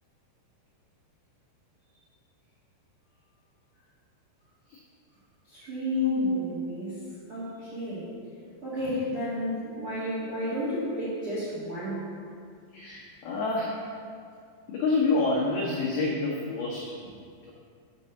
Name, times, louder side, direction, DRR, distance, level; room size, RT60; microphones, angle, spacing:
voice 1, 5.5-7.0 7.3-8.1 8.6-12.1, left 1 dB, 60° right, -11 dB, 1.4 m, -32 dB
voice 2, 6.0-6.4 12.7-13.8 14.7-16.9, left 3 dB, 85° left, -4 dB, 2.1 m, -27 dB
7.9 x 5.4 x 6.9 m, 2.3 s
omnidirectional pair, 5.8 m